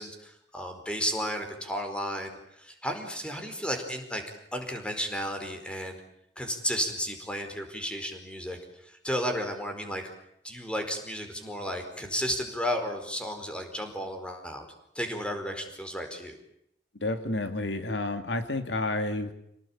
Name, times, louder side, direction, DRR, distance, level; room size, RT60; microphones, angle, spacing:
voice 1, 0.0-4.2 4.5-6.0 6.4-8.6 8.8-10.0 10.4-14.7 14.9-16.3, equal, 5° left, 5 dB, 4.7 m, -33 dB
voice 2, 17.0-19.3, left 2 dB, 85° left, 8 dB, 2.4 m, -30 dB
28.5 x 19.0 x 8.7 m, 0.76 s
head